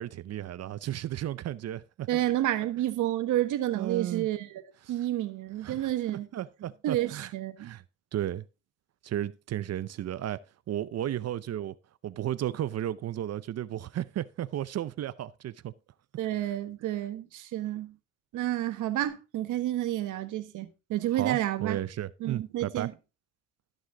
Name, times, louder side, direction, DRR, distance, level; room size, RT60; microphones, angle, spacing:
voice 1, 0.0-2.1 3.7-4.3 5.6-5.9 6.3-7.3 7.6-7.8 8.1-8.5 9.0-11.7 12.0-15.7 21.1-22.9, right 12 dB, 55° right, 0.6 m, -34 dB
voice 2, 2.1-4.6 4.9-6.3 6.8-7.7 16.2-18.0 18.3-21.8 22.2-22.9, right 13 dB, 85° right, 1.3 m, -30 dB
13.5 x 6.2 x 3.7 m
cardioid pair, 90°, 30 cm